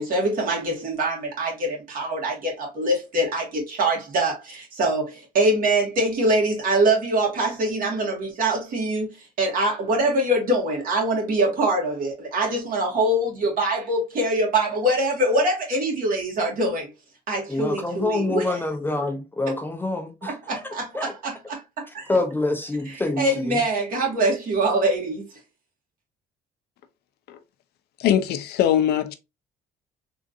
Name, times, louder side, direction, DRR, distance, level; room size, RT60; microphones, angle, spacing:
voice 1, 0.0-16.9 17.3-18.6 19.5-19.6 20.2-22.2 22.9-25.2, right 1 dB, 55° right, 1.7 m, -24 dB
voice 2, 17.5-20.3 20.9-21.1 22.1-23.6, left 2 dB, 10° left, 0.5 m, -26 dB
voice 3, 28.0-29.1, left 10 dB, 70° left, 0.5 m, -21 dB
3.6 x 2.5 x 2.6 m
cardioid pair, 110°, 17 cm